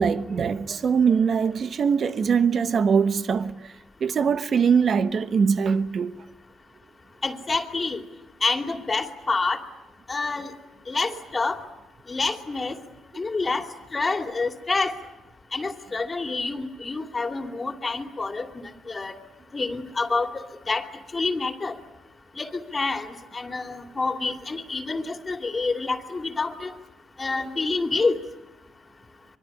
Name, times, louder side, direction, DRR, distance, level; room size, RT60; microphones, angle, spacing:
voice 1, 0.0-3.6 4.0-6.2, right 6 dB, 50° right, 1.2 m, -22 dB
voice 2, 7.2-8.0 8.4-9.6 10.1-10.5 10.9-11.6 12.1-12.8 13.2-13.7 13.9-14.9 15.5-18.5 18.9-19.1 19.5-20.3 20.7-20.9 21.1-21.8 22.4-26.7 27.2-28.2, left 3 dB, 30° left, 2.7 m, -27 dB
24.5 x 24.0 x 9.8 m
cardioid pair, 90°, 0 cm